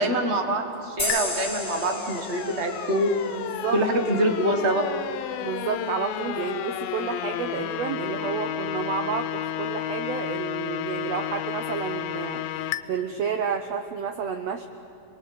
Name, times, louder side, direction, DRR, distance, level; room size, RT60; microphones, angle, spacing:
voice 1, 0.0-3.1 3.7-4.9, right 1 dB, 35° right, 4 dB, 1.0 m, -25 dB
sound 1, 1.0-4.3, left 2 dB, 10° left, 6.1 m, -33 dB
sound 2, 1.1-12.8, left 11 dB, 85° left, 2.5 m, -32 dB
voice 2, 3.3-3.8 4.1-4.2 5.4-12.4 12.9-14.7, right 7 dB, 75° right, 7 dB, 1.5 m, -30 dB
27.0 x 21.5 x 8.4 m, 2.6 s
omnidirectional pair, 4.0 m